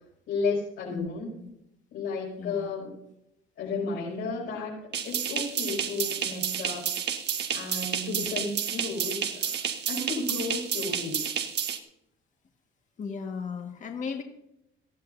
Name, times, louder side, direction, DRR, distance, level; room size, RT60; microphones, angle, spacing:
voice 1, 0.3-1.3 1.9-2.9 3.6-6.8 7.5-9.6 9.9-11.3, left 3 dB, 65° left, -7 dB, 6.0 m, -33 dB
voice 2, 2.4-2.7 8.1-8.3 13.0-14.2, left 5 dB, 35° left, 3 dB, 1.7 m, -36 dB
sound 1, 4.9-11.8, right 8 dB, 55° right, 1.5 m, -31 dB
19.0 x 15.5 x 2.7 m, 0.79 s
cardioid pair, 165°, 21 cm